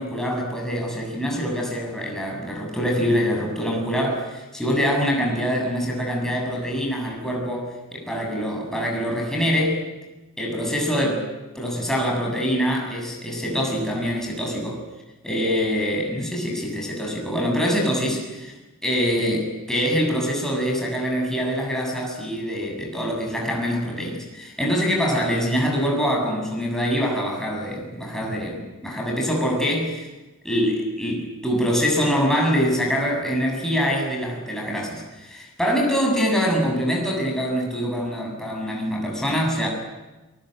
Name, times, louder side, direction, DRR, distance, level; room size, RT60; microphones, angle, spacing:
voice 1, 0.0-9.8 10.4-11.3 11.5-14.8 15.2-18.5 18.8-30.1 30.4-39.7, equal, ahead, -1 dB, 7.3 m, -24 dB
29.0 x 20.5 x 8.0 m, 1.1 s
head